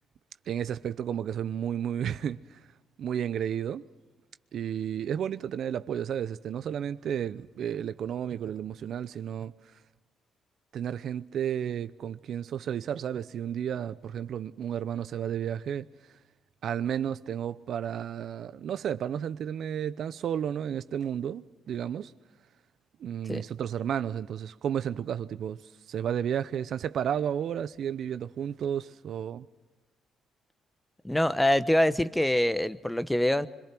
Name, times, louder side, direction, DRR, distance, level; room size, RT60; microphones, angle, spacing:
voice 1, 0.5-2.6 3.0-3.9 4.5-9.5 10.7-15.9 16.6-22.1 23.0-25.6 25.9-29.5, right 9 dB, 65° right, 0.7 m, -32 dB
voice 2, 31.0-33.5, left 1 dB, 5° left, 1.0 m, -25 dB
25.0 x 23.0 x 6.1 m
cardioid pair, 90°, 0 cm